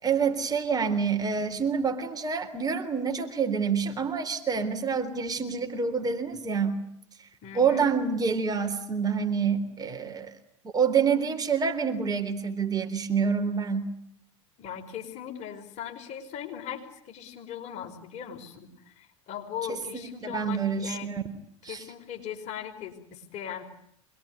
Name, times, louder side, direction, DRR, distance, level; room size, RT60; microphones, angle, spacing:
voice 1, 0.0-6.8 7.5-10.3 10.7-13.9 19.7-21.2 21.6-21.8, right 6 dB, 25° right, 6 dB, 3.7 m, -27 dB
voice 2, 7.4-7.9 14.6-21.1 21.7-23.6, left 9 dB, 45° left, 4 dB, 5.2 m, -39 dB
25.5 x 21.5 x 9.6 m, 0.71 s
hypercardioid pair, 85°, 16 cm